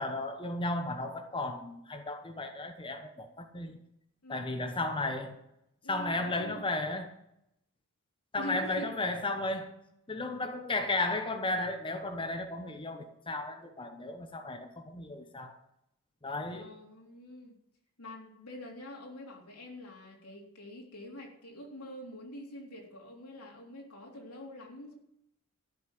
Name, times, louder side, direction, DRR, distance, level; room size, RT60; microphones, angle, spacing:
voice 1, 0.0-3.7 4.3-5.4 5.9-7.1 8.3-9.7 10.1-15.6 16.2-16.7, left 2 dB, 25° left, 5 dB, 1.0 m, -34 dB
voice 2, 4.2-4.6 5.8-6.7 8.4-9.0 12.5-12.6 16.5-17.6 18.0-24.9, left 1 dB, 90° left, -1 dB, 3.5 m, -45 dB
14.5 x 6.4 x 9.2 m, 0.81 s
head